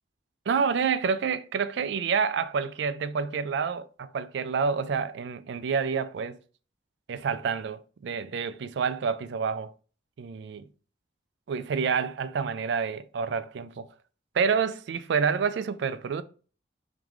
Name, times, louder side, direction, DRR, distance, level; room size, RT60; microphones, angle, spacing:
voice 1, 0.5-6.4 7.1-9.7 10.2-10.6 11.5-13.9 14.3-16.2, right 6 dB, 65° right, 0.3 m, -28 dB
3.6 x 3.5 x 3.1 m
head